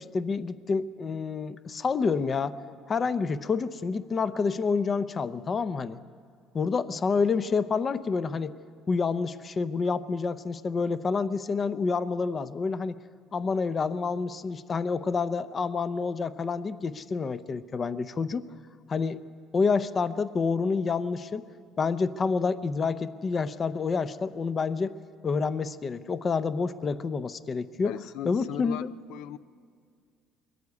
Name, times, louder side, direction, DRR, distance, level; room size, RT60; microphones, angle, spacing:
voice 1, 0.0-2.5 2.9-6.0 6.5-8.5 8.9-13.0 13.3-18.5 18.9-19.2 19.5-21.4 21.8-24.9 25.2-27.9 28.2-28.9, left 5 dB, 30° left, 14 dB, 0.6 m, -28 dB
voice 2, 27.8-29.4, left 12 dB, 80° left, 14 dB, 0.4 m, -38 dB
22.0 x 14.5 x 9.5 m, 2.2 s
cardioid pair, 135°, 0 cm